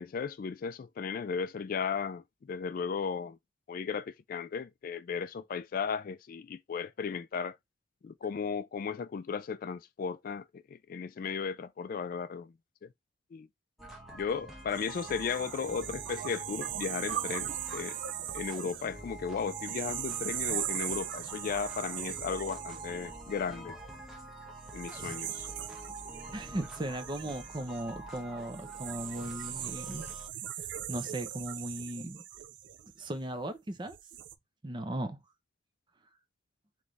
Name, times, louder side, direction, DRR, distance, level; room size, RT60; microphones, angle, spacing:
voice 1, 0.0-3.4 3.7-7.6 8.0-12.5 12.8-12.9 13.3-13.5 14.1-18.0 18.3-23.7 24.7-25.5, left 6 dB, 45° left, 0.3 m, -35 dB
sound 1, 13.8-30.3, right 1 dB, ahead, 1.1 m, -46 dB
sound 2, 14.7-24.0 24.6-33.3 33.8-34.3, right 11 dB, 65° right, 0.4 m, -40 dB
voice 2, 26.3-30.1 30.6-32.2 33.0-34.0 34.6-35.2, right 1 dB, 25° right, 0.6 m, -37 dB
3.5 x 3.1 x 3.8 m
head